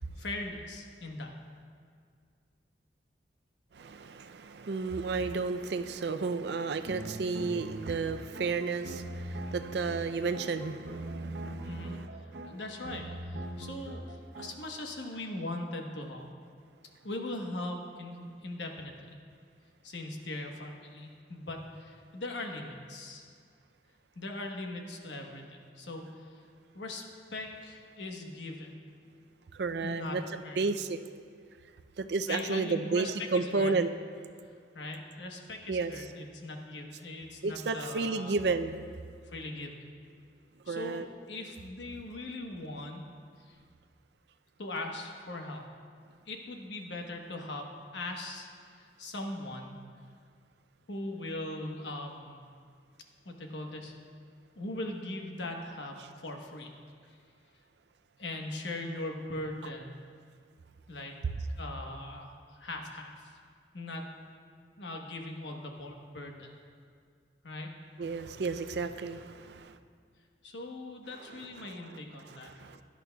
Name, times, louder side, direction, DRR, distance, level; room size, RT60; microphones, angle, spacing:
voice 1, 0.2-1.3 11.6-16.3 17.0-18.9 19.8-23.3 24.2-26.4 26.7-28.8 29.8-30.6 32.3-33.9 34.7-38.4 39.2-39.8 40.7-43.0 43.5-43.6 44.6-45.6 46.3-48.5 48.8-49.8 50.9-52.4 53.2-53.9 54.5-56.7 57.1-57.2 58.2-60.0 60.9-61.2 61.5-63.3 63.7-64.0 64.8-66.5 67.4-67.7 70.4-72.5, left 2 dB, 85° left, 2 dB, 1.1 m, -40 dB
voice 2, 3.7-12.6 29.5-31.0 32.0-33.9 35.7-35.9 37.4-38.8 40.7-41.1 68.0-69.7 71.4-71.9 72.2-72.8, right 4 dB, 70° right, 10 dB, 0.5 m, -32 dB
sound 1, 6.8-14.8, right 1 dB, 90° right, 0.9 m, -41 dB
16.5 x 11.0 x 2.3 m, 2.1 s
head